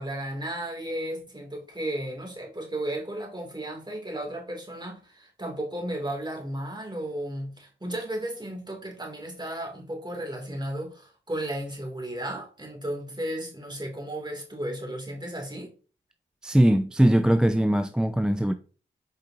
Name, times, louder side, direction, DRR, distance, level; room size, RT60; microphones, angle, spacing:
voice 1, 0.0-15.7, right 1 dB, 20° right, 2.9 m, -34 dB
voice 2, 16.4-18.5, right 1 dB, 5° right, 0.5 m, -21 dB
7.6 x 5.0 x 2.9 m
cardioid pair, 45°, 20 cm